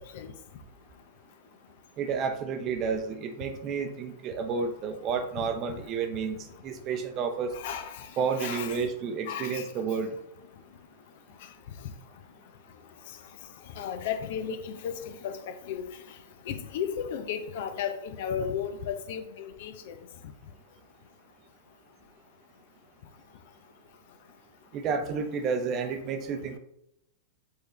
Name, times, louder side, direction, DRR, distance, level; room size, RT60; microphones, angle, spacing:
voice 1, 2.0-6.4 6.6-7.5 8.2-10.2 24.7-26.6, right 5 dB, 30° right, 7 dB, 0.7 m, -31 dB
voice 2, 7.5-8.1 8.3-8.8 9.3-9.6 13.8-16.0 16.5-19.9, left 8 dB, 50° left, 8 dB, 0.7 m, -34 dB
6.6 x 4.6 x 3.2 m, 0.80 s
figure-of-eight pair, 100°, 0 cm